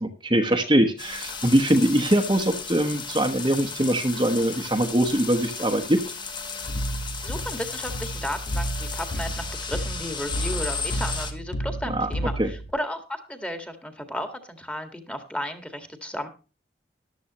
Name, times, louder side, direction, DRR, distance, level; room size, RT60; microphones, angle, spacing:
voice 1, 0.0-6.0 11.9-12.1 12.4-12.5, right 1 dB, 25° right, 5 dB, 1.2 m, -22 dB
sound 1, 1.0-11.3, left 5 dB, 25° left, 1.6 m, -35 dB
sound 2, 6.6-12.7, right 1 dB, 85° left, 1.3 m, -32 dB
voice 2, 7.2-16.3, left 1 dB, 5° left, 8 dB, 1.8 m, -34 dB
14.0 x 12.0 x 3.0 m, 0.32 s
head